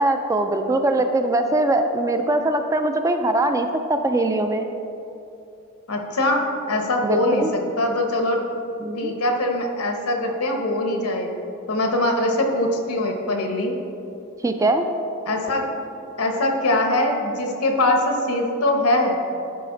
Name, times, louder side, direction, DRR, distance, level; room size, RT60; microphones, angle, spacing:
voice 1, 0.0-4.7 7.0-7.5 8.8-9.1 14.4-14.8, right 2 dB, 15° right, 6 dB, 0.3 m, -21 dB
voice 2, 5.9-8.4 9.0-11.3 11.7-13.7 15.3-15.7 16.2-19.2, left 1 dB, 80° left, 3 dB, 1.0 m, -22 dB
10.5 x 4.9 x 3.9 m, 2.7 s
head